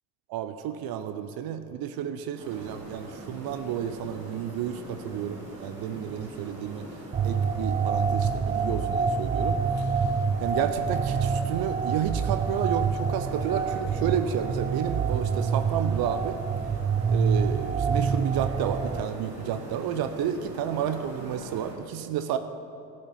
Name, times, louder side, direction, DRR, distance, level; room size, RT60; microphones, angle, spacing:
voice 1, 0.3-6.9 7.2-9.9 10.4-16.4 17.1-22.4, right 9 dB, 50° right, 10 dB, 0.7 m, -31 dB
sound 1, 2.3-21.7, right 1 dB, 90° right, 2.4 m, -42 dB
sound 2, 7.1-19.0, right 6 dB, 20° right, 0.5 m, -27 dB
12.0 x 8.6 x 5.5 m, 2.9 s
figure-of-eight pair, 60°, 47 cm